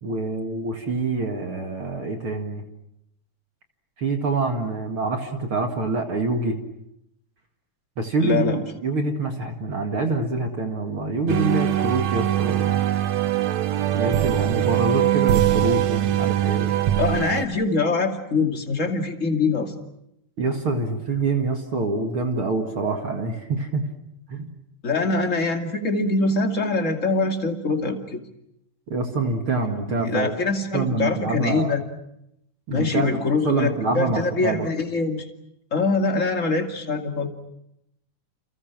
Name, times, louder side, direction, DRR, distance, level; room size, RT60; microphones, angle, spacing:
voice 1, 0.0-2.6 4.0-6.6 8.0-12.8 13.9-16.8 20.4-23.9 24.3-24.5 28.9-30.4 30.7-31.7 32.7-34.7, right 3 dB, 45° right, 4 dB, 2.5 m, -26 dB
voice 2, 8.2-8.6 17.0-19.7 24.8-28.2 30.0-31.8 32.7-35.3 35.7-37.3, left 3 dB, 25° left, 4 dB, 2.5 m, -23 dB
sound 1, 11.3-17.5, right 12 dB, 65° right, 2.3 m, -22 dB
29.5 x 28.5 x 6.0 m, 0.80 s
omnidirectional pair, 3.6 m